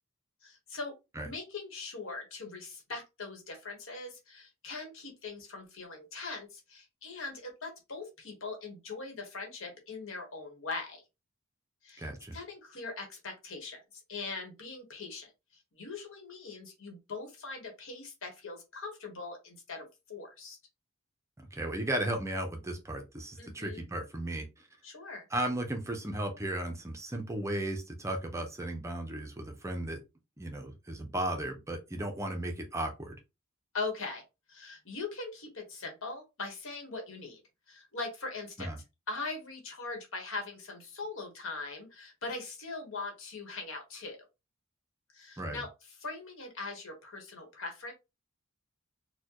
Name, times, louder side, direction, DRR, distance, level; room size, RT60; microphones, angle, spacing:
voice 1, 0.4-0.9 1.2-11.0 11.8-20.6 23.4-23.9 24.8-25.3 33.7-34.2 34.5-37.4 37.7-38.7 39.1-44.2 45.1-45.7 46.0-47.9, left 3 dB, 65° left, 1.3 m, -41 dB
voice 2, 12.0-12.4 21.4-24.5 25.3-30.0 30.4-33.2 38.6-38.8 45.4-45.6, right 1 dB, 15° right, 0.5 m, -35 dB
4.3 x 2.2 x 2.9 m
head